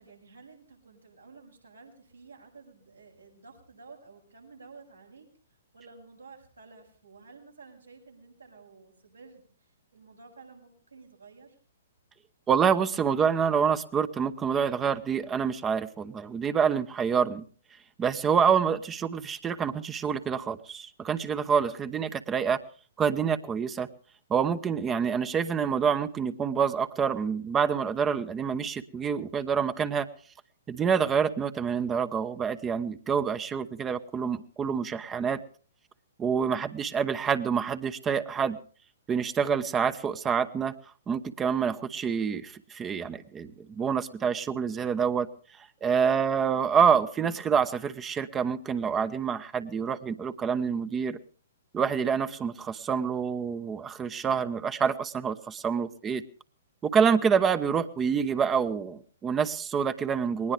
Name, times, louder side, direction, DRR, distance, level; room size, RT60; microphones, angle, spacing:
voice 1, 0.0-5.3 5.7-11.6 21.7-22.1 36.4-36.7 46.0-46.3, right 4 dB, 85° right, 0 dB, 7.4 m, -52 dB
voice 2, 12.5-17.4 18.0-22.6 23.0-23.9 24.3-30.1 30.7-35.4 36.2-38.6 39.1-40.7 41.1-45.3 45.8-51.2 51.7-56.2 56.9-60.5, right 6 dB, 15° right, 12 dB, 1.0 m, -27 dB
21.0 x 19.5 x 3.4 m, 0.41 s
figure-of-eight pair, 120°, 0 cm